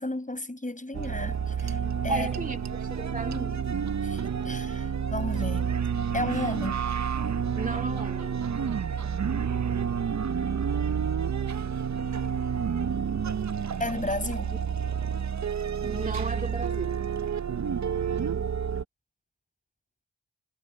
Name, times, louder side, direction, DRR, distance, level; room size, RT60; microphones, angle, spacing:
voice 1, 0.0-2.3 4.0-5.8 6.1-6.8 13.8-14.5, left 2 dB, 20° left, 5.6 m, -33 dB
sound 1, 0.9-18.8, right 7 dB, 45° right, 0.7 m, -29 dB
voice 2, 2.1-3.7 7.6-8.4 15.8-17.0, right 3 dB, 20° right, 2.4 m, -34 dB
cardioid pair, 65°, 39 cm